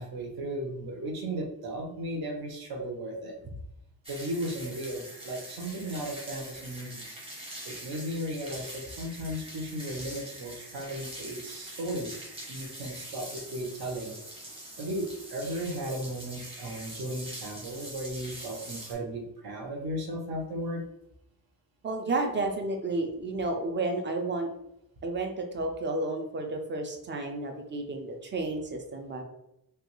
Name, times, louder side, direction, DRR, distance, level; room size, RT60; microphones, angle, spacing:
voice 1, 0.0-3.4 4.1-7.0 7.6-12.2 12.5-14.2 14.8-20.8, right 1 dB, 75° right, 2 dB, 0.7 m, -35 dB
sound 1, 4.0-18.9, right 1 dB, 15° right, 0.8 m, -43 dB
voice 2, 21.8-24.5 25.0-29.2, right 2 dB, 30° right, 3 dB, 0.4 m, -31 dB
3.3 x 2.2 x 3.0 m, 0.84 s
wide cardioid pair, 180°, 37 cm